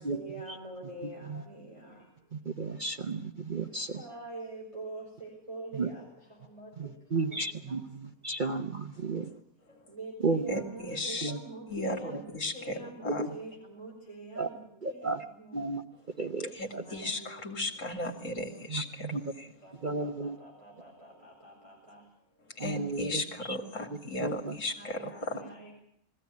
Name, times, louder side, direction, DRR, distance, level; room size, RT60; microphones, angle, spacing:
voice 1, 0.0-2.8 3.9-7.8 9.7-15.6 16.7-17.4 18.0-18.1 18.5-18.7 19.2-19.3 19.6-22.3 24.8-25.7, right 2 dB, 20° right, -3 dB, 5.8 m, -46 dB
voice 2, 2.3-4.0 5.7-5.9 6.8-9.3 10.2-10.6 11.2-11.4 12.1-12.2 13.0-13.3 14.4-14.5 14.8-15.2 15.5-15.8 16.2-16.8 18.7-19.2 19.8-20.4 22.6-23.2 24.2-24.6, right 3 dB, 35° right, 6 dB, 1.0 m, -33 dB
voice 3, 10.5-11.3 11.7-13.2 16.5-19.5 22.5-25.4, left 2 dB, 55° left, 3 dB, 3.1 m, -36 dB
21.0 x 16.0 x 9.4 m, 0.72 s
omnidirectional pair, 1.6 m